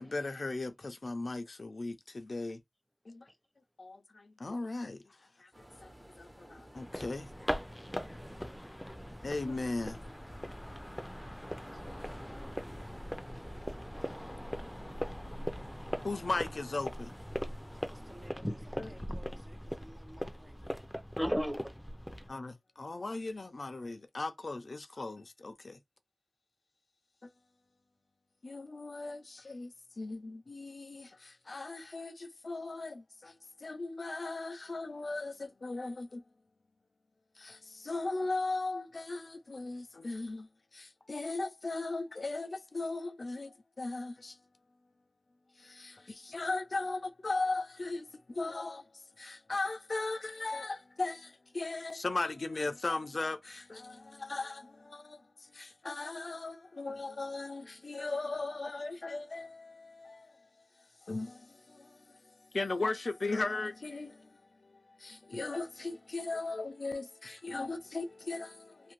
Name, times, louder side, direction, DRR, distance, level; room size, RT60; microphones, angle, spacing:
voice 1, 0.0-2.6 3.1-3.3 3.8-7.3 9.2-10.0 16.0-17.1 18.8-18.9 22.3-25.8 27.2-27.3 28.4-36.2 37.4-44.4 45.5-68.9, left 3 dB, 85° left, 0.4 m, -38 dB
sound 1, 5.5-18.3, equal, 30° right, 1.0 m, -54 dB
sound 2, 6.8-22.3, equal, 10° left, 0.5 m, -41 dB
voice 2, 7.5-9.5 10.4-16.3 18.2-19.0 20.9-21.7 22.0-22.2, equal, 5° right, 0.8 m, -43 dB
voice 3, 17.9-20.8, right 1 dB, 50° right, 1.0 m, -56 dB
2.6 x 2.5 x 3.0 m
wide cardioid pair, 55°, 0 cm